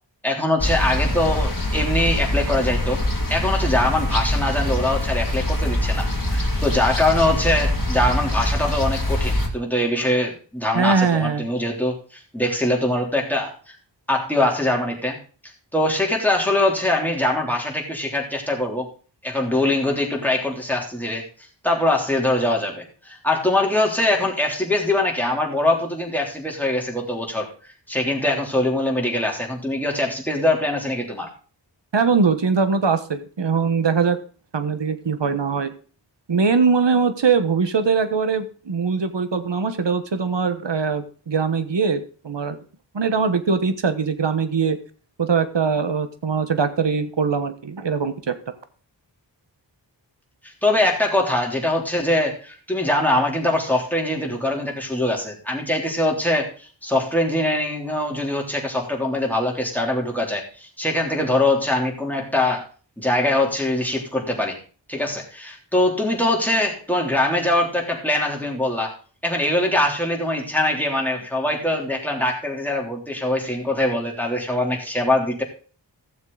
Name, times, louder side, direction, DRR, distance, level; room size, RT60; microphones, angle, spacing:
voice 1, 0.2-3.0 3.3-13.8 14.1-15.2 15.4-18.9 19.2-21.2 21.6-27.5 27.9-31.3 50.4-62.6 63.0-64.6 64.9-68.9 69.2-75.4, left 1 dB, 5° left, -1 dB, 3.4 m, -22 dB
sound 1, 0.6-9.5, left 1 dB, 45° left, 2.3 m, -23 dB
voice 2, 10.7-11.5 31.9-34.2 34.5-35.7 36.3-42.6 42.9-44.8 45.2-48.4, right 5 dB, 70° right, 11 dB, 1.2 m, -21 dB
15.5 x 7.3 x 4.0 m, 0.39 s
wide cardioid pair, 60°, 44 cm